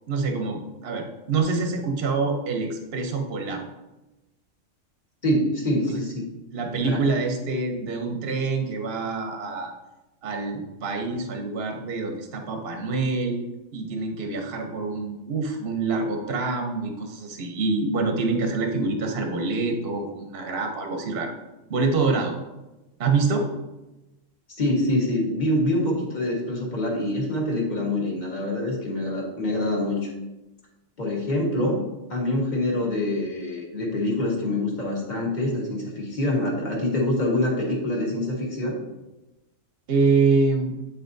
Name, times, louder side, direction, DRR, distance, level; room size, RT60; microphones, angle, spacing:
voice 1, 0.1-3.6 5.8-6.0 6.5-9.7 10.2-13.4 13.7-21.3 21.7-22.4 23.0-23.5 39.9-40.7, right 4 dB, 55° right, 3 dB, 0.9 m, -26 dB
voice 2, 5.2-6.2 6.8-7.0 24.5-30.1 31.0-31.8 32.1-38.7, left 1 dB, 35° left, -3 dB, 1.6 m, -25 dB
9.1 x 4.2 x 2.6 m, 1.0 s
omnidirectional pair, 1.4 m